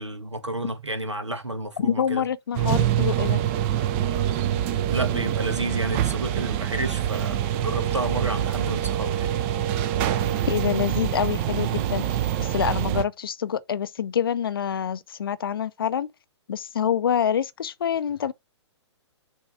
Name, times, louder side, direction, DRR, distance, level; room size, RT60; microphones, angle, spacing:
voice 1, 0.0-2.3 4.9-9.3, right 1 dB, 80° right, 1.5 m, -31 dB
voice 2, 1.8-3.4 10.5-12.0 12.4-16.1 16.5-18.3, left 8 dB, 50° left, 0.5 m, -26 dB
sound 1, 2.5-13.0, right 11 dB, 25° right, 0.5 m, -25 dB
7.1 x 3.2 x 4.8 m
figure-of-eight pair, 120°, 15 cm